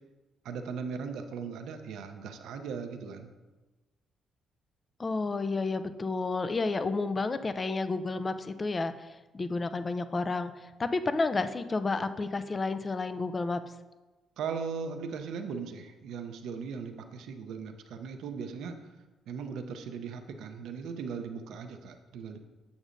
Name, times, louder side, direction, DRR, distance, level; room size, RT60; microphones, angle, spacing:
voice 1, 0.4-3.3 14.4-18.8 19.3-22.4, right 6 dB, 80° right, 7 dB, 0.6 m, -38 dB
voice 2, 5.0-13.6, left 3 dB, 30° left, 11 dB, 0.4 m, -31 dB
8.2 x 6.1 x 2.6 m, 1.2 s
cardioid pair, 90°, 0 cm